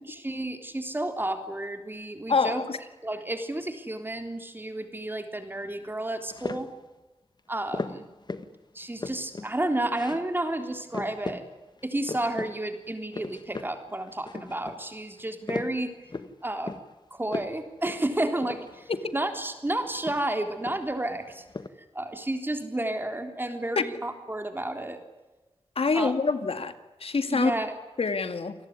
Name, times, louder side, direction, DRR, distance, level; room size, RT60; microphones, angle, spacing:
voice 1, 0.1-2.6 3.0-6.7 7.5-8.1 8.7-11.4 11.8-15.9 16.4-16.8 17.1-21.4 21.9-25.0 25.9-26.2 27.3-27.7, right 1 dB, 20° right, 7 dB, 3.6 m, -31 dB
voice 2, 2.3-2.8 23.8-23.9 25.8-26.7 27.0-27.5 28.0-28.6, left 4 dB, 70° left, 11 dB, 2.0 m, -25 dB
sound 1, 6.3-6.8 7.7-8.5 8.8-9.5 9.9-10.3 10.6-10.7 10.9-11.4 11.8-12.5 12.8-13.7 14.1-14.8 15.2-16.3 16.7-16.9 17.3-17.6 17.8-18.0 18.4-19.2 19.8-21.0 21.3-21.7, left 3 dB, 45° left, 1.6 m, -37 dB
28.5 x 19.5 x 9.7 m, 1.1 s
wide cardioid pair, 105°, 10 cm